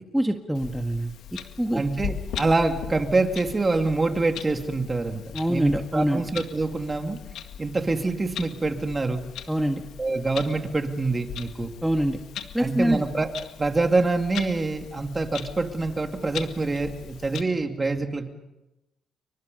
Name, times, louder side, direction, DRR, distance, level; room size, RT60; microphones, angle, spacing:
voice 1, 0.1-1.1 1.6-1.8 5.3-6.2 9.5-9.8 11.8-12.2 12.5-13.0, right 1 dB, 5° right, 4 dB, 1.7 m, -24 dB
Clock, 0.5-17.4, left 9 dB, 80° left, 2.0 m, -39 dB
voice 2, 1.7-5.2 5.5-7.2 7.6-9.2 10.0-11.7 12.6-18.3, right 3 dB, 25° right, 5 dB, 2.7 m, -25 dB
29.5 x 24.5 x 5.5 m, 0.97 s
cardioid pair, 90°, 0 cm